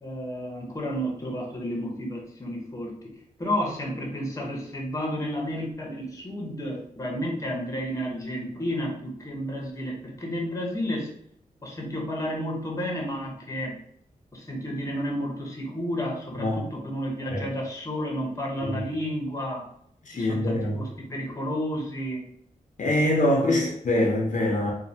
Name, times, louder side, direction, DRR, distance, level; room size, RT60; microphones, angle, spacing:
voice 1, 0.0-3.1 3.4-11.1 11.6-13.8 14.3-19.6 20.1-22.2 23.4-23.6, equal, 20° left, -2 dB, 0.7 m, -31 dB
voice 2, 20.0-20.8 22.8-24.7, left 1 dB, 60° left, -1 dB, 0.6 m, -24 dB
3.1 x 2.1 x 2.6 m, 0.69 s
wide cardioid pair, 125°, 14 cm